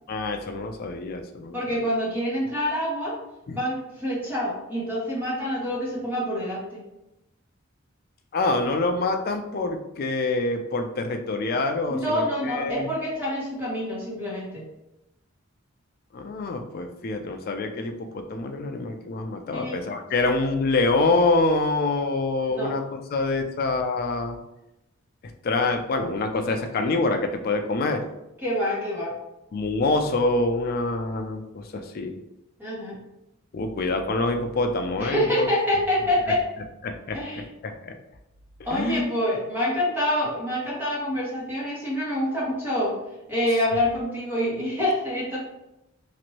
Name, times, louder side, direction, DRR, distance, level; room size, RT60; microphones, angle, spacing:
voice 1, 0.1-1.6 3.5-3.6 8.3-12.9 16.1-24.4 25.4-28.0 29.5-32.2 33.5-35.5 36.8-37.2 37.6-37.9 38.7-39.0, left 3 dB, 45° left, 5 dB, 0.4 m, -26 dB
voice 2, 1.5-3.2 3.5-6.8 11.9-14.7 19.5-19.8 20.2-20.3 22.5-22.7 28.4-29.2 32.6-33.0 35.0-36.4 37.1-37.5 38.6-43.0 43.3-45.4, left 1 dB, 10° right, -7 dB, 1.1 m, -26 dB
3.0 x 2.5 x 2.9 m, 0.91 s
head